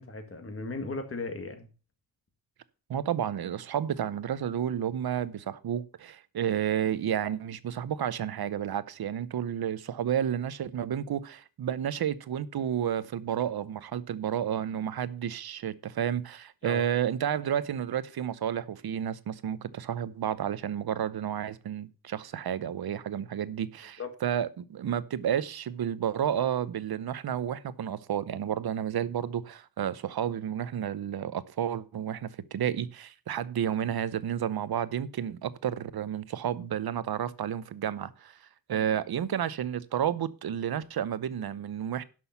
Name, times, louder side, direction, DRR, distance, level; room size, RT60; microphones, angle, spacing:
voice 1, 0.0-1.7 16.6-16.8 24.0-24.1 38.7-38.8, left 3 dB, 40° left, 1.9 m, -36 dB
voice 2, 2.9-38.3 38.7-42.0, right 9 dB, 90° right, 0.8 m, -31 dB
11.5 x 6.3 x 5.7 m
wide cardioid pair, 180°, 36 cm